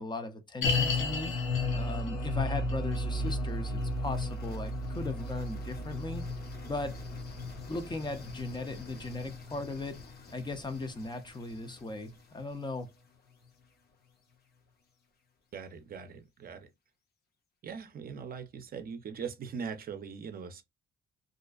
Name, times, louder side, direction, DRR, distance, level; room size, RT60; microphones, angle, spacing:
voice 1, 0.0-1.3 1.7-6.3 6.7-7.0 7.7-10.0 10.3-12.9, left 2 dB, 20° left, 0.5 m, -38 dB
sound 1, 0.6-11.9 12.2-12.3 12.9-13.0, left 2 dB, 80° left, 0.9 m, -34 dB
sound 2, 2.5-14.5, left 2 dB, 55° left, 0.8 m, -52 dB
voice 2, 15.5-16.7 17.6-20.6, right 6 dB, 50° right, 0.5 m, -41 dB
2.5 x 2.2 x 2.3 m
cardioid pair, 90°, 20 cm